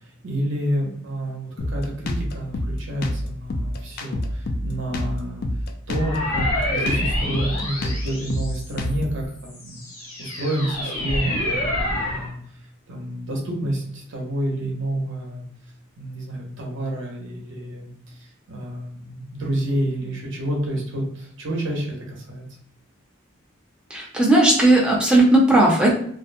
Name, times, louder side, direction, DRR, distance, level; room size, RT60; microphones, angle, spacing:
voice 1, 0.2-5.4 5.9-9.8 10.2-12.3 12.9-15.4 16.0-17.9 18.1-22.4, right 1 dB, 60° right, -1 dB, 0.7 m, -29 dB
Drum kit, 1.6-9.3, left 1 dB, 45° left, 0.3 m, -27 dB
sound 1, 5.9-8.9 9.5-12.3, left 1 dB, 90° left, 1.1 m, -27 dB
voice 2, 23.9-25.9, right 1 dB, 5° right, -3 dB, 0.5 m, -16 dB
2.5 x 2.1 x 2.6 m, 0.64 s
head